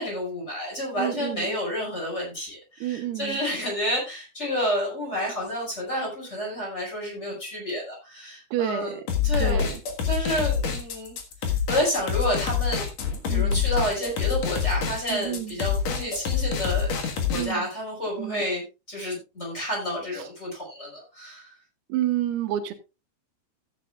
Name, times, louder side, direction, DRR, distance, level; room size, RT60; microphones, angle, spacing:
voice 1, 0.0-9.0 9.2-9.7 10.1-11.1 11.4-12.9 13.3-21.5, left 1 dB, 15° left, 5.5 m, -30 dB
voice 2, 1.0-1.6 2.8-3.4 8.5-9.0 9.4-9.8 13.3-13.6 15.1-15.6 17.3-17.6 18.2-18.5 21.9-22.7, right 11 dB, 90° right, 3.2 m, -29 dB
sound 1, 9.1-17.4, left 7 dB, 55° left, 2.3 m, -26 dB
15.5 x 9.1 x 2.4 m
omnidirectional pair, 4.4 m